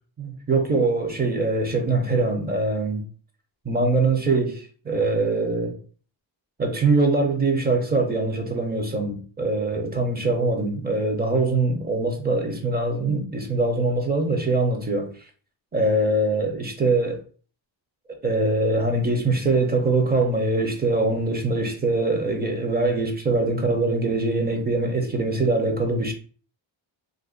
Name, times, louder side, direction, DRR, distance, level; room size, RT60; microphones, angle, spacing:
voice 1, 0.2-3.1 3.6-5.7 6.6-15.1 15.7-17.2 18.2-26.1, right 2 dB, 20° right, 0.6 m, -23 dB
2.6 x 2.6 x 3.7 m
cardioid pair, 155°, 47 cm